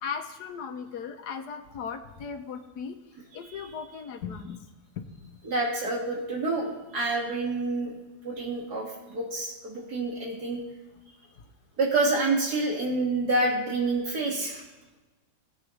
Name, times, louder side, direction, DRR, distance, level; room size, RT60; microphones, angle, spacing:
voice 1, 0.0-3.0 3.3-4.7 5.2-5.4, left 6 dB, 75° left, 7 dB, 1.5 m, -37 dB
voice 2, 5.4-7.9 8.2-10.6 11.8-14.6, right 2 dB, 75° right, -2 dB, 2.9 m, -28 dB
18.5 x 8.1 x 3.3 m, 1.1 s
omnidirectional pair, 1.7 m